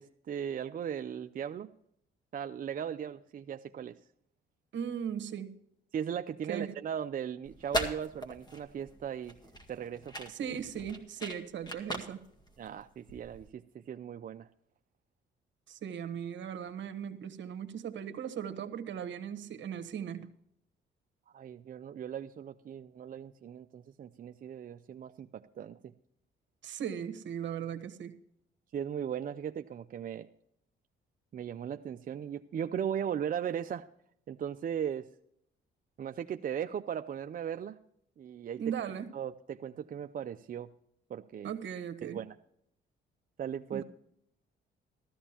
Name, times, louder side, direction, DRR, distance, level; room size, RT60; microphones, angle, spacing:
voice 1, 0.0-1.7 2.3-4.0 5.9-9.4 9.7-10.5 12.6-14.5 21.3-25.9 28.7-30.3 31.3-33.9 34.3-35.1 36.0-37.8 38.2-38.6 39.1-40.7 41.1-41.5 42.1-42.3 43.4-43.8, right 8 dB, 45° right, 8 dB, 0.5 m, -38 dB
voice 2, 4.7-5.6 6.5-6.7 10.3-12.2 15.7-20.3 26.6-28.2 38.6-39.1 41.4-42.2 43.7-43.8, right 8 dB, 70° right, 11 dB, 1.2 m, -38 dB
sound 1, 7.4-13.5, equal, 20° left, 1.9 m, -40 dB
14.0 x 13.5 x 2.9 m, 0.73 s
cardioid pair, 90°, 20 cm